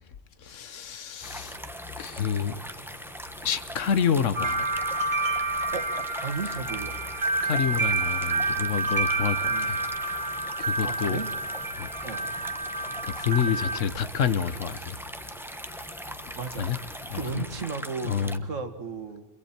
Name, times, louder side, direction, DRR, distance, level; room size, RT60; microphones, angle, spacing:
voice 1, 0.4-1.6 2.0-2.6 3.4-4.7 7.4-9.8 10.6-11.2 11.7-12.0 13.0-15.0 16.6-16.8 17.1-17.4 18.0-18.5, left 7 dB, 75° left, 1.4 m, -28 dB
sound 1, 1.2-17.3, left 3 dB, 55° left, 3.6 m, -46 dB
sound 2, 1.2-18.4, equal, ahead, 0.9 m, -41 dB
sound 3, 4.4-13.8, right 2 dB, 40° right, 1.4 m, -29 dB
voice 2, 6.2-7.0 9.5-9.7 10.8-11.3 12.0-12.3 16.3-16.7 17.1-19.3, right 4 dB, 75° right, 2.2 m, -34 dB
28.5 x 23.0 x 4.4 m
omnidirectional pair, 1.3 m